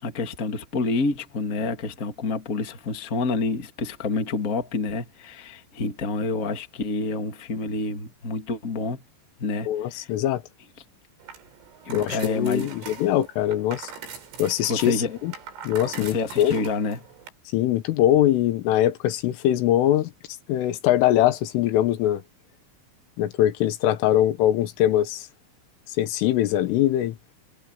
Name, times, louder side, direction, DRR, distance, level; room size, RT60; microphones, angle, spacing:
voice 1, 0.0-9.0 9.4-10.1 11.8-12.7 14.7-15.1 16.0-17.0, left 3 dB, 30° left, 1.6 m, -28 dB
voice 2, 9.7-10.4 11.9-13.9 14.4-15.3 15.7-16.5 17.5-20.1 20.5-22.2 23.2-25.3 25.9-27.2, left 12 dB, 80° left, 3.9 m, -22 dB
sound 1, 11.2-17.3, right 6 dB, 80° right, 7.4 m, -41 dB
omnidirectional pair, 5.7 m